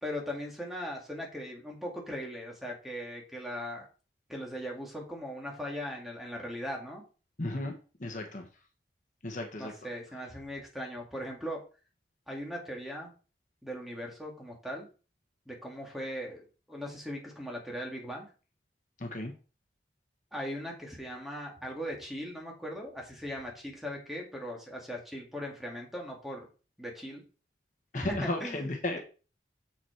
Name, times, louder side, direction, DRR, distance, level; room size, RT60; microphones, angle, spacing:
voice 1, 0.0-3.9 4.3-7.0 9.6-11.6 12.3-13.1 13.6-14.9 15.5-18.3 20.3-26.5 26.8-27.2 27.9-28.7, equal, ahead, -1 dB, 2.1 m, -39 dB
voice 2, 7.4-7.7 8.0-8.5 9.2-9.7 19.0-19.3 27.9-29.0, left 2 dB, 45° left, 3 dB, 1.3 m, -34 dB
7.2 x 5.9 x 4.6 m, 0.35 s
head